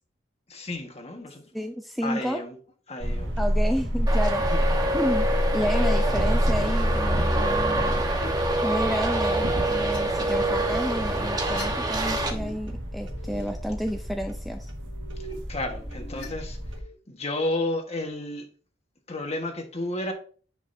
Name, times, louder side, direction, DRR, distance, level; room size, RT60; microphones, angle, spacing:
voice 1, 0.5-1.4 2.0-2.5 2.9-3.3 4.5-4.6 15.5-16.6 17.1-18.5 19.1-20.1, left 2 dB, 35° left, 1.4 m, -31 dB
voice 2, 1.5-2.4 3.4-4.4 4.9-8.0 8.6-14.7, equal, ahead, 0.4 m, -31 dB
sound 1, 3.0-16.8, equal, 70° right, 1.6 m, -28 dB
Traffic noise roadway noise, 4.1-12.3, right 1 dB, 20° right, 1.1 m, -27 dB
Plunking Coconut Instrument Reversed, 8.2-8.3 9.3-10.0 11.2-12.5 12.8-13.4 14.6-16.9, left 1 dB, 65° left, 2.4 m, -46 dB
9.8 x 5.1 x 2.6 m
head